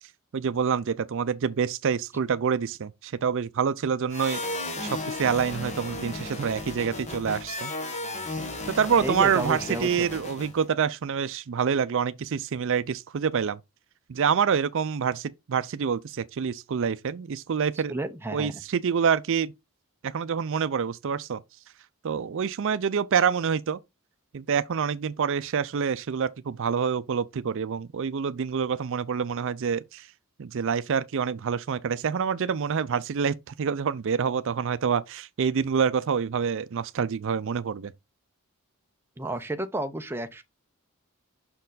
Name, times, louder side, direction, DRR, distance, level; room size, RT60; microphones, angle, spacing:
voice 1, 0.3-4.4 4.8-7.7 8.8-13.6 14.1-17.9 18.3-19.5 20.0-21.4 22.0-23.8 24.3-30.1 30.4-37.9, right 6 dB, 60° right, 0.4 m, -27 dB
sound 1, 4.1-10.7, left 2 dB, 30° left, 1.2 m, -35 dB
voice 2, 9.0-10.1 17.9-18.6 39.2-40.4, right 1 dB, 10° right, 0.5 m, -31 dB
6.1 x 4.5 x 3.9 m
head